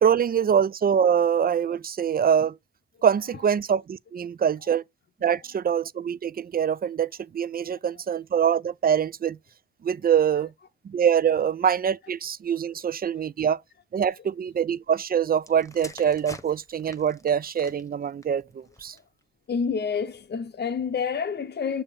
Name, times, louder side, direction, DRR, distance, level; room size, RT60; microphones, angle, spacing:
voice 1, 0.0-2.5 3.0-4.8 5.2-9.4 9.8-10.5 10.8-13.6 13.9-19.0, right 8 dB, 45° right, 0.4 m, -24 dB
sound 1, 15.4-19.2 20.0-20.3, left 2 dB, 15° left, 1.0 m, -47 dB
voice 2, 19.5-21.8, left 6 dB, 50° left, 0.6 m, -28 dB
6.8 x 2.8 x 5.4 m
cardioid pair, 55°, 21 cm